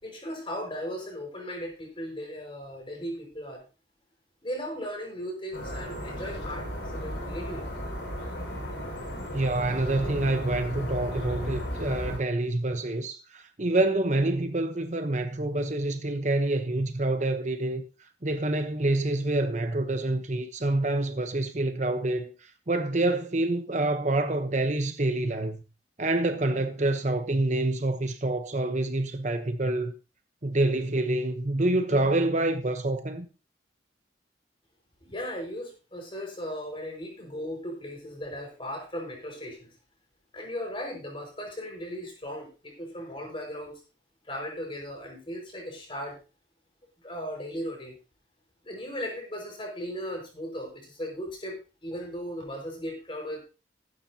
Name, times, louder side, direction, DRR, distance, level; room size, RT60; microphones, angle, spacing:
voice 1, 0.0-3.6 4.4-6.7 6.9-7.6 35.0-39.7 40.3-43.8 44.3-46.2 47.0-48.0 48.6-53.4, equal, 30° left, 5.4 m, -37 dB
sound 1, 5.5-12.2, equal, 75° left, 6.0 m, -35 dB
voice 2, 9.3-17.8 18.2-22.3 22.7-25.6 26.0-29.9 30.4-33.3, right 2 dB, 40° right, 1.0 m, -27 dB
15.0 x 11.5 x 2.8 m
head